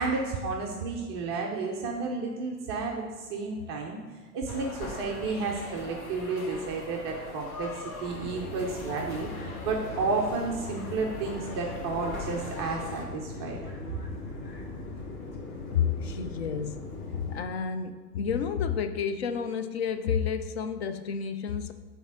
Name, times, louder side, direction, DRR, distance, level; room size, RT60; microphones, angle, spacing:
voice 1, 0.0-4.0 4.3-13.6, right 4 dB, 20° right, -1 dB, 0.4 m, -32 dB
sound 1, 4.5-13.1, left 3 dB, 65° left, 1.3 m, -41 dB
sound 2, 8.1-17.4, left 2 dB, 25° left, 1.3 m, -40 dB
voice 2, 15.7-21.7, left 7 dB, 45° left, 9 dB, 0.5 m, -30 dB
7.1 x 3.5 x 6.0 m, 1.4 s
figure-of-eight pair, 100°, 46 cm